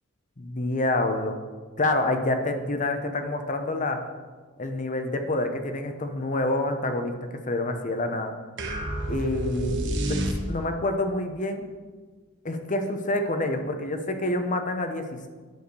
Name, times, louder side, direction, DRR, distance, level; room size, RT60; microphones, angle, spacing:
voice 1, 0.4-1.4 1.8-4.1 4.6-8.3 9.1-10.2 10.5-11.6 12.4-15.3, left 2 dB, 35° left, 6 dB, 0.9 m, -27 dB
sound 1, 8.6-10.9, right 1 dB, 60° right, 1.1 m, -29 dB
9.3 x 4.9 x 6.9 m, 1.5 s
head